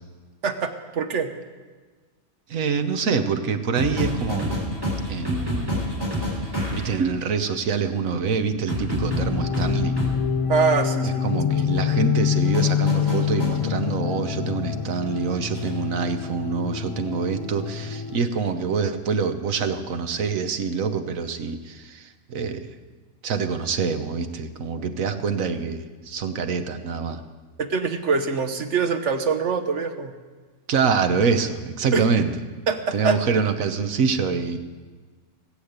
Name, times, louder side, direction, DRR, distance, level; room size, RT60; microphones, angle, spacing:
voice 1, 0.4-1.3 10.5-11.2 27.7-30.1 31.9-32.0 32.7-33.2, right 5 dB, 65° right, 8 dB, 1.3 m, -24 dB
voice 2, 2.5-4.6 5.1-5.8 6.7-9.9 11.0-22.7 23.2-27.2 30.7-32.3 32.9-34.6, right 5 dB, 90° right, 8 dB, 1.5 m, -25 dB
sound 1, 3.7-7.0 8.7-10.2 12.5-13.6 15.5-15.8, equal, 15° right, 3.7 m, -27 dB
sound 2, 9.0-18.2, left 8 dB, 55° left, 0.3 m, -26 dB
18.5 x 8.4 x 8.1 m, 1.4 s
omnidirectional pair, 1.4 m